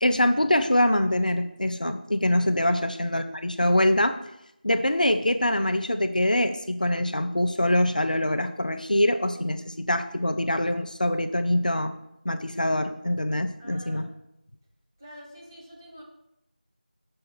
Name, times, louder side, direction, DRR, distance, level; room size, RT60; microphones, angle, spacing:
voice 1, 0.0-4.2 4.6-11.9 12.2-14.1, left 1 dB, 60° left, 8 dB, 0.6 m, -24 dB
voice 2, 13.6-14.2 15.0-16.0, equal, 20° right, -4 dB, 1.4 m, -47 dB
6.8 x 5.3 x 6.1 m, 0.82 s
figure-of-eight pair, 175°, 5 cm